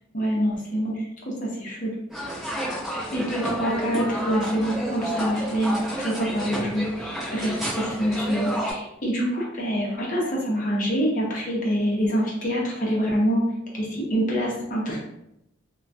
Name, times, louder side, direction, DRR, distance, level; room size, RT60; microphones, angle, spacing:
voice 1, 0.1-1.0 1.4-1.9 2.9-13.4 13.7-15.0, equal, 40° left, -3 dB, 0.7 m, -26 dB
sound 1, 2.1-8.7, right 1 dB, ahead, 0.6 m, -30 dB
2.2 x 2.2 x 2.6 m, 0.82 s
head